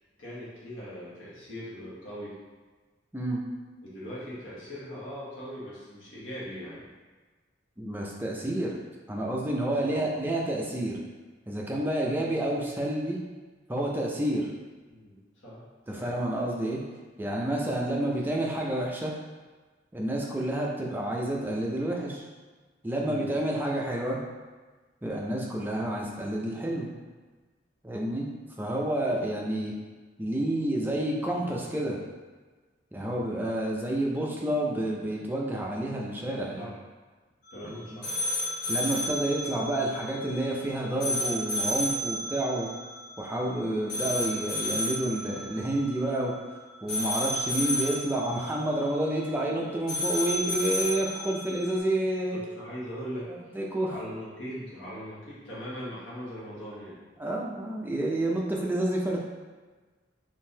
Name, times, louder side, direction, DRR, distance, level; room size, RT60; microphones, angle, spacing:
voice 1, 0.2-2.4 3.8-6.9 9.7-10.2 14.9-15.6 15.9-16.1 23.0-23.3 36.6-36.7 37.5-38.1 47.3-47.4 52.3-53.6 53.9-57.0, equal, 80° left, -8 dB, 1.3 m, -40 dB
voice 2, 7.8-8.8 9.1-11.0 11.5-13.2 13.7-14.5 15.9-16.8 17.2-19.1 19.9-22.2 22.8-24.2 25.0-26.9 27.8-28.3 28.6-29.7 30.2-32.0 32.9-36.7 37.9-38.0 38.7-42.7 43.2-46.3 46.8-52.4 53.3-53.9 57.2-59.2, right 1 dB, 10° right, -2 dB, 0.4 m, -29 dB
sound 1, 37.4-51.8, left 1 dB, 55° left, 1.2 m, -33 dB
3.6 x 2.7 x 2.7 m, 1.3 s
head